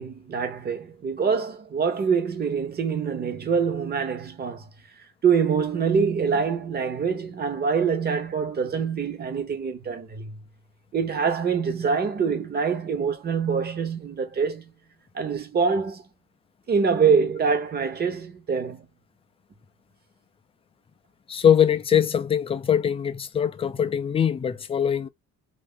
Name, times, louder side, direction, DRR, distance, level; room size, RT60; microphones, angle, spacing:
voice 1, 0.0-4.7 5.2-10.3 10.9-14.7 15.1-16.0 16.7-18.8, right 6 dB, 30° right, 1.0 m, -25 dB
voice 2, 21.3-25.1, left 8 dB, 20° left, 0.3 m, -22 dB
3.2 x 2.6 x 3.7 m
cardioid pair, 140°, 31 cm